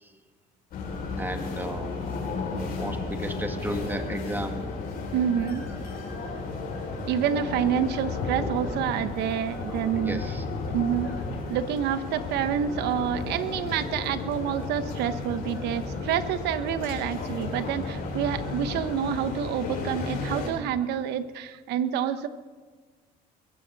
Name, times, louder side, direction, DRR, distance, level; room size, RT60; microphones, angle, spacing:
sound 1, 0.7-20.5, left 3 dB, 65° left, 5.7 m, -33 dB
voice 1, 1.2-2.1 2.6-4.6 9.7-10.4 13.0-13.1 18.8-18.9, right 1 dB, 10° right, 5 dB, 2.0 m, -35 dB
voice 2, 5.1-5.6 7.0-10.2 10.7-11.2 11.5-22.3, right 9 dB, 80° right, 11 dB, 1.0 m, -28 dB
21.5 x 16.0 x 4.1 m, 1.5 s
cardioid pair, 110°, 17 cm